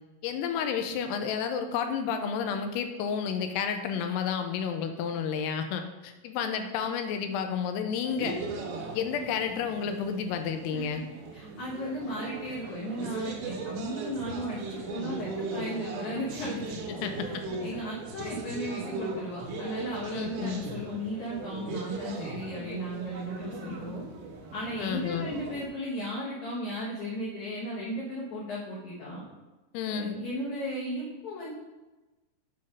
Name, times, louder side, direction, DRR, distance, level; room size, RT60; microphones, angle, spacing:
voice 1, 0.2-8.4 8.9-11.0 16.9-17.3 17.5-17.8 20.1-20.6 23.7-23.8 24.8-25.3 29.7-30.2, left 7 dB, 85° left, 6 dB, 2.6 m, -31 dB
sound 1, 8.1-25.7, right 3 dB, 85° right, 3.2 m, -38 dB
voice 2, 10.7-11.0 11.3-24.0 24.5-29.2 29.9-31.5, equal, 65° left, -5 dB, 1.9 m, -36 dB
8.4 x 4.2 x 5.0 m, 1.1 s
omnidirectional pair, 4.9 m